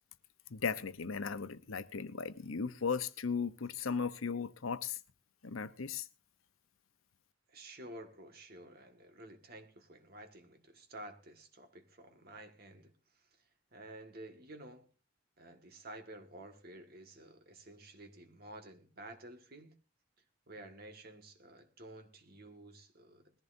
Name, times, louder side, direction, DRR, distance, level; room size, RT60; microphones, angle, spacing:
voice 1, 0.5-5.0 5.4-6.0, left 5 dB, 90° left, 0.8 m, -36 dB
voice 2, 7.5-13.2 13.7-14.9 15.4-19.8 20.5-23.4, right 1 dB, 50° right, 1.8 m, -52 dB
20.5 x 14.5 x 2.7 m
head